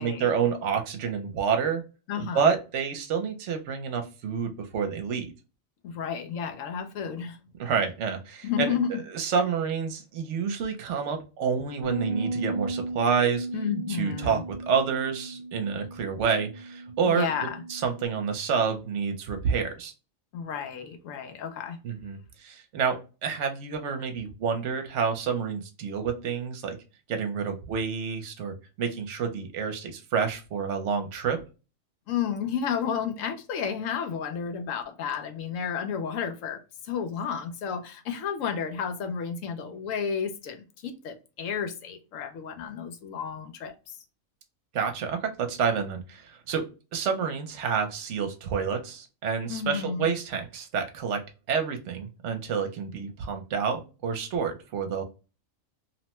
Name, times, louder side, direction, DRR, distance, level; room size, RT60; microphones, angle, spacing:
voice 1, 0.0-1.8 2.2-5.3 7.6-13.5 14.0-17.3 17.7-19.9 21.8-26.8 27.1-31.4 44.7-55.0, right 6 dB, 65° right, 0.9 m, -29 dB
voice 2, 2.1-2.5 5.8-7.4 8.4-9.0 13.5-14.4 17.0-17.6 20.3-21.8 32.1-44.0 49.5-50.1, left 7 dB, 75° left, 1.0 m, -32 dB
Bass guitar, 11.8-18.1, right 2 dB, 85° right, 0.3 m, -35 dB
2.9 x 2.1 x 2.9 m
omnidirectional pair, 1.4 m